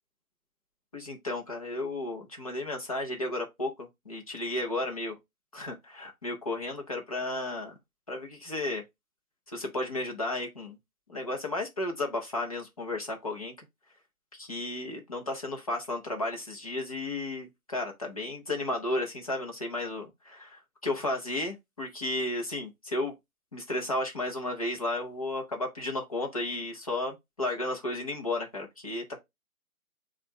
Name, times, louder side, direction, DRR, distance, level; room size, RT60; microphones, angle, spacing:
voice 1, 0.9-5.2 5.5-7.8 8.1-8.8 9.5-10.8 11.1-13.5 14.3-23.1 23.5-29.2, left 2 dB, 25° left, 0.9 m, -33 dB
6.7 x 2.5 x 3.1 m
figure-of-eight pair, 150°, 43 cm